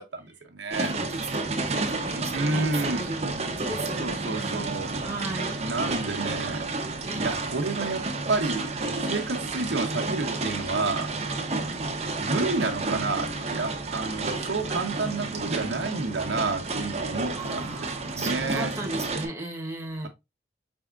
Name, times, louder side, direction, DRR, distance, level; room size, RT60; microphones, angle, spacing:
voice 1, 0.0-0.9 2.3-3.1 4.0-4.9 5.6-6.6 7.1-8.7 9.0-11.1 12.2-18.7, right 3 dB, 80° right, 0.9 m, -30 dB
sound 1, 0.7-19.3, right 3 dB, 35° right, 0.7 m, -31 dB
voice 2, 0.8-4.8 5.0-5.5 7.0-7.3 11.6-11.9 17.3-20.1, right 2 dB, 15° right, 1.0 m, -36 dB
5.4 x 3.5 x 2.4 m
head